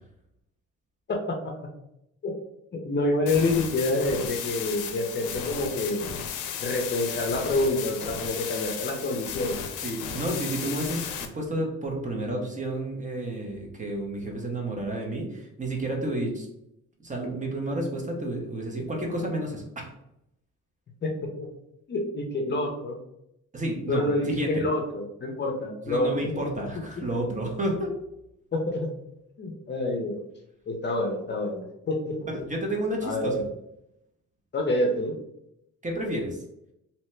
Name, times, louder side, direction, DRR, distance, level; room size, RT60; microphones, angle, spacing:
voice 1, 1.1-1.7 2.2-2.3 2.7-6.1 6.6-9.6 21.0-21.5 21.9-23.0 23.9-26.3 28.5-28.9 29.4-30.2 30.7-32.3 33.0-33.5 34.5-35.2, left 2 dB, 35° left, 2 dB, 0.6 m, -27 dB
sound 1, 3.3-11.3, left 8 dB, 85° left, 0.5 m, -35 dB
voice 2, 9.8-16.5 17.0-19.9 23.5-24.6 25.9-28.0 32.3-33.4 35.8-36.4, right 1 dB, 25° right, 0 dB, 0.7 m, -31 dB
2.8 x 2.1 x 3.1 m, 0.82 s
cardioid pair, 90°, 30 cm